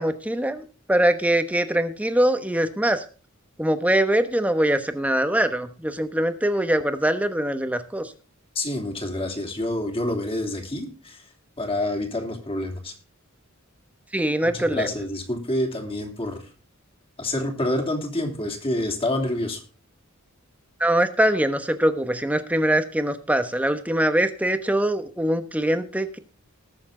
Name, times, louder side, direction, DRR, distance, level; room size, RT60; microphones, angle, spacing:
voice 1, 0.0-3.0 3.6-8.1 14.1-14.9 20.8-26.2, right 1 dB, 5° right, 9 dB, 1.1 m, -23 dB
voice 2, 8.5-11.2 11.6-12.9 14.4-16.4 17.2-19.6, left 1 dB, 25° left, 2 dB, 3.0 m, -27 dB
20.0 x 7.1 x 3.8 m, 0.36 s
head